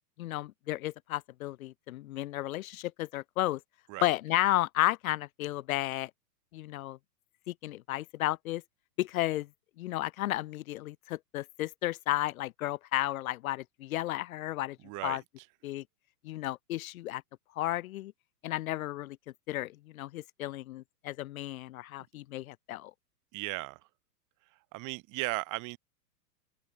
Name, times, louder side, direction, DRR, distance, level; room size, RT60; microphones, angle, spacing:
voice 1, 0.2-3.6 4.0-6.1 6.5-7.0 7.5-8.6 9.0-9.5 9.8-14.8 15.0-15.2 15.6-15.8 16.2-17.2 17.5-18.1 18.4-19.2 19.5-22.9, left 15 dB, 55° left, 1.7 m, -33 dB
voice 2, 14.8-15.2 23.3-23.8 24.7-25.8, right 23 dB, 40° right, 4.3 m, -36 dB
open air
hypercardioid pair, 120°, 49 cm